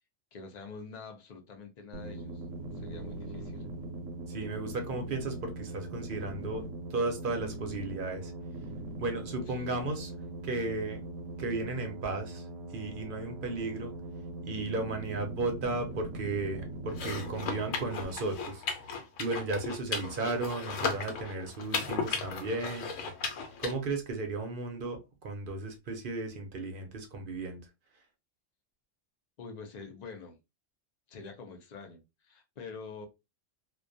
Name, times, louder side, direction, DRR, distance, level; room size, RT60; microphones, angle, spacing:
voice 1, 0.3-2.4 2.7-3.7 9.5-9.9 29.4-30.4 31.1-33.1, left 4 dB, 55° left, 0.4 m, -46 dB
sound 1, 1.9-18.0, right 2 dB, 85° right, 0.9 m, -41 dB
voice 2, 4.3-6.6 6.9-8.3 9.0-10.1 10.4-11.1 11.4-12.5 12.7-13.9 14.4-18.6 19.2-22.9 23.6-27.6, right 3 dB, 55° right, 0.7 m, -34 dB
sound 2, 16.9-23.7, left 5 dB, 80° left, 1.0 m, -36 dB
2.3 x 2.2 x 2.5 m
omnidirectional pair, 1.3 m